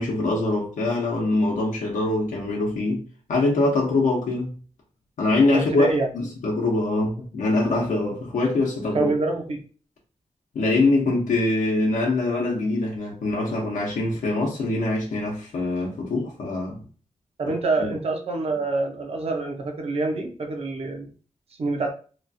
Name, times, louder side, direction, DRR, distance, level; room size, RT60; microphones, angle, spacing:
voice 1, 0.0-3.0 3.3-4.5 5.2-5.9 6.1-9.1 10.5-16.8 17.8-17.9, left 2 dB, 80° left, 0.7 m, -23 dB
voice 2, 5.5-6.1 8.9-9.6 17.4-21.1 21.6-21.9, right 3 dB, 50° right, 0.7 m, -26 dB
2.9 x 2.3 x 2.6 m
wide cardioid pair, 165°, 13 cm